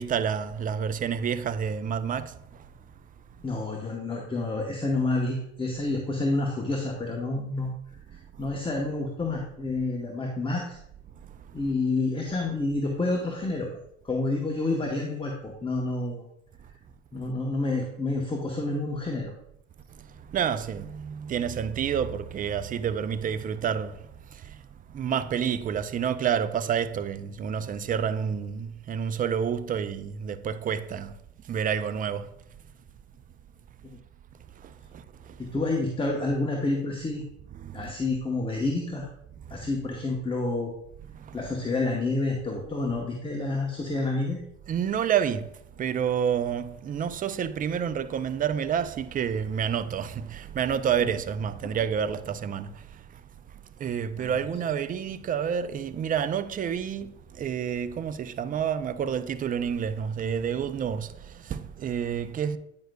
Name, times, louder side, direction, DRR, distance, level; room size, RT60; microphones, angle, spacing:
voice 1, 0.0-2.3 20.3-24.0 24.9-31.1 31.5-32.3 34.6-35.0 37.5-37.9 41.3-41.5 44.7-45.5 45.8-52.7 53.8-57.1 57.4-62.6, right 8 dB, 20° right, 0.4 m, -29 dB
voice 2, 3.4-7.7 8.1-10.8 11.5-13.7 14.0-16.2 17.1-19.3 33.8-34.0 35.4-37.2 37.7-39.1 39.5-40.7 41.3-44.4 54.2-54.4, left 2 dB, 15° left, 0.9 m, -29 dB
9.1 x 5.2 x 2.2 m
hypercardioid pair, 70°, 41 cm